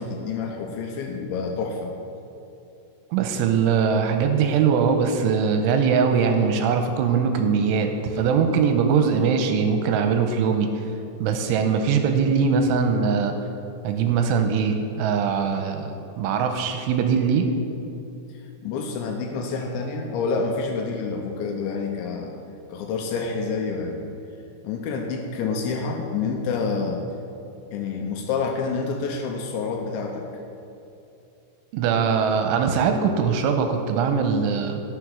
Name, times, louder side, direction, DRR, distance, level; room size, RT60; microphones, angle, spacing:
voice 1, 0.0-1.9 18.3-22.4 22.7-24.0 24.6-27.0 27.7-30.3, left 4 dB, 80° left, 2 dB, 2.8 m, -28 dB
voice 2, 3.1-10.8 11.2-13.3 13.8-17.5 31.7-34.8, right 6 dB, 85° right, 6 dB, 3.0 m, -21 dB
12.0 x 6.4 x 6.1 m, 2.7 s
omnidirectional pair, 5.7 m